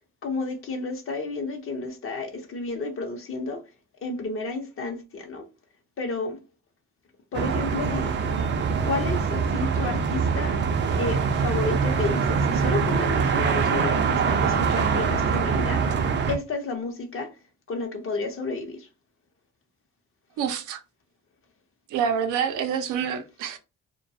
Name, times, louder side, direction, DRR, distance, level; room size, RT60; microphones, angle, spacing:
voice 1, 0.2-3.6 4.0-5.5 6.0-6.4 7.3-8.2 8.8-10.6 10.9-15.8 16.3-17.4 17.7-18.9, left 3 dB, 45° left, 0.7 m, -31 dB
sound 1, 7.3-16.4, right 5 dB, 40° right, 0.4 m, -24 dB
voice 2, 20.4-20.8 21.9-23.6, right 7 dB, 90° right, 0.5 m, -27 dB
2.2 x 2.2 x 2.6 m
cardioid pair, 90°, 30 cm